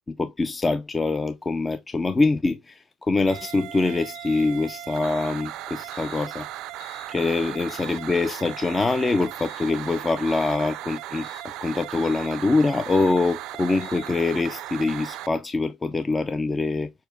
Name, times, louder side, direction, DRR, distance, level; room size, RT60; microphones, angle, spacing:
voice 1, 0.1-6.5 7.1-11.3 11.6-16.9, left 3 dB, 20° left, 0.3 m, -24 dB
sound 1, 3.3-3.6 4.1-4.4 5.0-5.3 5.9-6.2 6.8-7.1 7.7-8.0 8.6-8.9 9.4-9.7 10.3-10.6 11.2-11.4 12.0-12.3 12.9-13.2 13.8-14.1, left 6 dB, 90° left, 1.2 m, -48 dB
sound 2, 3.3-15.3, right 14 dB, 70° right, 0.3 m, -37 dB
6.5 x 2.5 x 2.2 m
cardioid pair, 135°, 0 cm